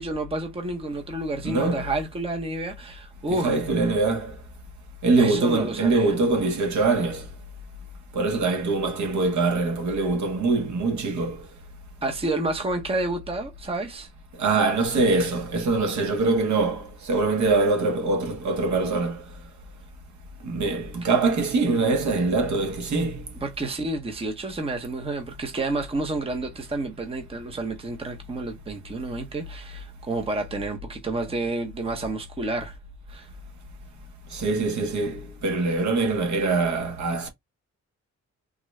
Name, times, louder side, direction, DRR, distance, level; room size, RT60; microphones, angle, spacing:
voice 1, 0.0-3.5 5.2-6.2 12.0-14.1 23.4-32.7 33.1-33.3, right 2 dB, 20° right, 0.7 m, -30 dB
voice 2, 1.4-1.9 3.3-4.4 5.0-7.3 8.1-11.4 14.4-19.2 20.4-23.3 34.3-37.3, right 3 dB, 70° right, 1.0 m, -23 dB
3.7 x 2.1 x 3.1 m
wide cardioid pair, 150°, 29 cm